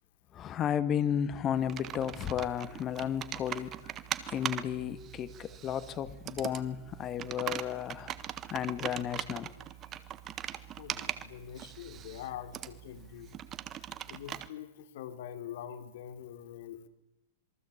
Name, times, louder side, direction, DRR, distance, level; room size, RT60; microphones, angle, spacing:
voice 1, 0.3-3.7 4.3-9.5, left 9 dB, 25° left, 14 dB, 1.7 m, -33 dB
Computer keyboard, 1.5-14.5, right 11 dB, 25° right, 1.4 m, -41 dB
voice 2, 3.8-4.3 9.9-10.0 10.8-13.4 14.1-16.9, left 10 dB, 65° left, 10 dB, 3.3 m, -45 dB
27.0 x 22.5 x 8.6 m, 0.94 s
supercardioid pair, 150°, 0 cm